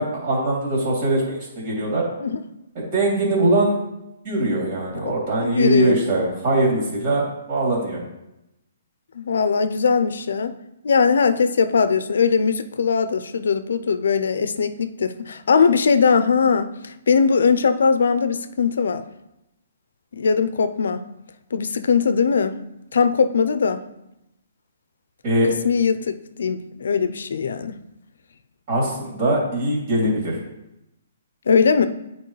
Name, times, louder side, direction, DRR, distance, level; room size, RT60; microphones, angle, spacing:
voice 1, 0.0-2.1 2.7-3.8 4.2-8.0 25.2-25.5 28.7-30.4, right 1 dB, 45° right, -4 dB, 2.8 m, -21 dB
voice 2, 5.4-6.0 9.1-10.6 10.8-19.0 20.1-21.0 21.5-22.6 22.9-23.8 25.5-27.8 31.5-31.9, left 5 dB, 75° left, 11 dB, 0.5 m, -20 dB
9.2 x 4.6 x 3.2 m, 0.89 s
hypercardioid pair, 145°, 0 cm